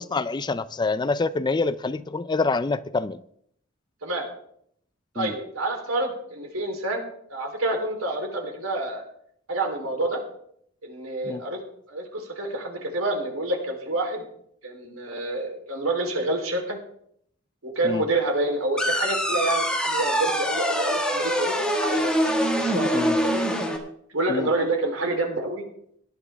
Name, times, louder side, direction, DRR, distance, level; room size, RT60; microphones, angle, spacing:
voice 1, 0.0-3.2 5.2-5.4 11.2-11.4 17.8-18.0 22.9-23.2 24.3-24.5, left 3 dB, 20° left, 0.4 m, -26 dB
voice 2, 5.1-9.0 9.5-10.2 10.8-11.6 11.9-14.3 14.6-16.8 17.6-22.3 22.6-23.5 24.1-25.6, right 2 dB, 85° right, 3.4 m, -28 dB
sound 1, 18.8-23.8, equal, 5° left, 1.7 m, -24 dB
17.5 x 11.0 x 3.4 m
head